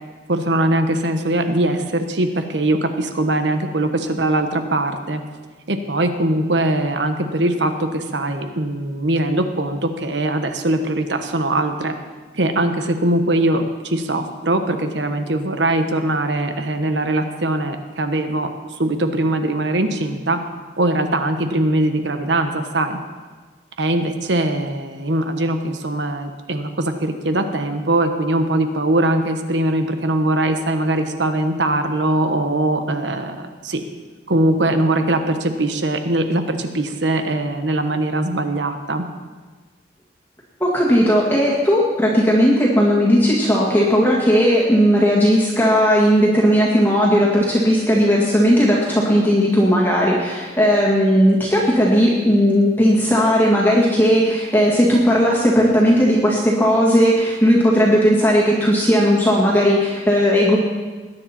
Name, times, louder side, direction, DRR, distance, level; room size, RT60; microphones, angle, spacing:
voice 1, 0.3-5.2 5.7-11.9 12.3-18.5 18.8-20.4 20.8-23.0 23.8-33.8 34.3-39.1, right 1 dB, 75° right, 7 dB, 1.2 m, -21 dB
voice 2, 40.6-60.6, equal, 10° left, -5 dB, 1.9 m, -16 dB
21.0 x 9.9 x 4.4 m, 1.4 s
head